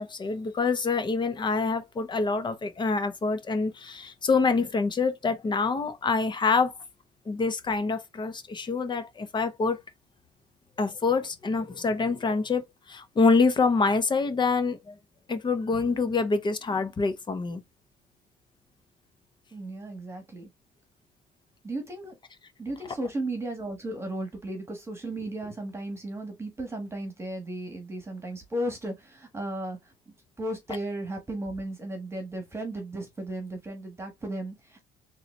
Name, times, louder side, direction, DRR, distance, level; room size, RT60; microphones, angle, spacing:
voice 1, 0.0-6.7 7.3-9.8 10.8-12.6 12.9-14.9 15.3-17.6, left 4 dB, 25° left, 0.7 m, -26 dB
voice 2, 19.5-20.5 21.6-22.2 22.6-29.9 30.4-34.8, right 1 dB, 15° right, 1.3 m, -35 dB
3.9 x 2.9 x 3.0 m
cardioid pair, 110°, 17 cm